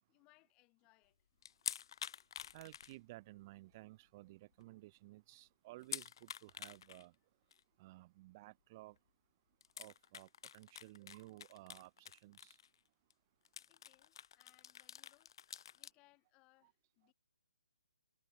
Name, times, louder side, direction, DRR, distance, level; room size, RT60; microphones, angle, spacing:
voice 1, 0.1-1.3 13.7-15.3 15.7-17.1, left 24 dB, 20° left, 7.4 m, -71 dB
sound 1, 1.4-3.4 3.7-3.8 4.3-4.4 4.6-4.7 5.8-7.0 7.5-7.6 9.0-9.1 9.6-12.8 13.1-13.2 13.4-15.9, left 9 dB, 45° left, 0.4 m, -48 dB
voice 2, 2.5-7.1 7.8-9.0 9.8-12.6 16.6-16.7, right 19 dB, 30° right, 3.1 m, -56 dB
figure-of-eight pair, 145°, 3 cm